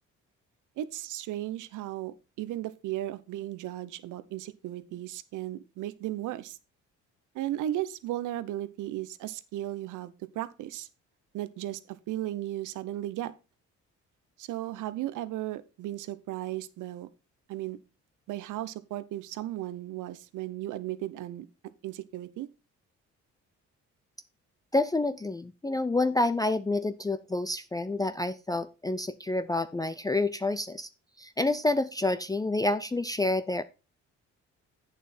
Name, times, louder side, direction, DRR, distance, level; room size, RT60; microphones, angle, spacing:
voice 1, 0.8-6.6 7.3-10.9 11.3-13.3 14.4-17.1 17.5-17.8 18.3-21.4 21.8-22.5, right 14 dB, 85° right, 0.8 m, -35 dB
voice 2, 24.7-30.9 31.2-33.6, left 2 dB, 10° left, 0.5 m, -28 dB
8.6 x 6.9 x 4.3 m
cardioid pair, 90°, 30 cm